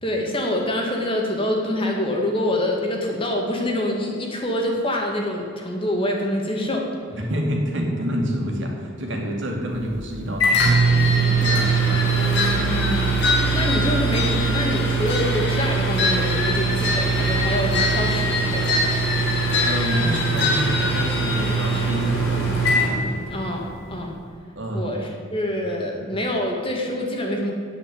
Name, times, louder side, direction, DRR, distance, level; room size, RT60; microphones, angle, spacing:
voice 1, 0.0-6.8 12.7-13.1 13.5-18.8 23.3-24.2 24.7-25.0 25.3-27.5, left 1 dB, 25° left, 0 dB, 1.9 m, -25 dB
voice 2, 7.1-12.0 19.6-22.8 24.6-25.0 25.9-26.1, equal, 65° right, 0 dB, 2.5 m, -28 dB
Microwave oven, 9.7-23.7, right 4 dB, 75° left, 3.4 m, -22 dB
sound 1, 10.5-21.9, left 3 dB, 55° left, 2.2 m, -26 dB
8.5 x 8.5 x 9.3 m, 2.4 s
head